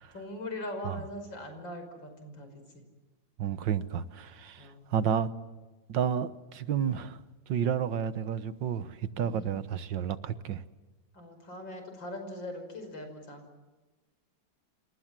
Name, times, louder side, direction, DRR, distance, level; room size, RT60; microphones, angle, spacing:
voice 1, 0.1-2.8 4.6-4.8 9.2-9.5 11.1-13.5, left 1 dB, 90° left, 6 dB, 6.1 m, -41 dB
voice 2, 3.4-5.3 5.9-7.2 7.5-10.6, right 8 dB, 80° right, 13 dB, 1.8 m, -31 dB
28.0 x 27.5 x 7.6 m, 1.2 s
omnidirectional pair, 2.0 m